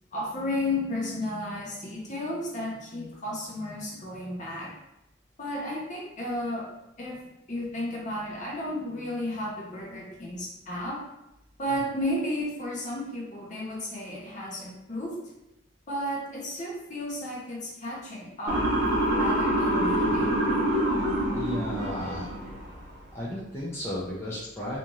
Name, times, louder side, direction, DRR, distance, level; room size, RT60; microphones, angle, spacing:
voice 1, 0.1-4.7 5.4-6.7 7.0-7.2 7.5-11.1 11.6-15.2 15.9-18.6 19.2-20.4, left 1 dB, 40° left, -3 dB, 0.7 m, -33 dB
Motor vehicle (road) / Siren, 18.5-22.6, right 1 dB, 55° right, 0.8 m, -25 dB
voice 2, 21.3-22.3 23.1-24.8, left 1 dB, 15° left, -7 dB, 0.4 m, -34 dB
2.6 x 2.4 x 3.0 m, 0.88 s
head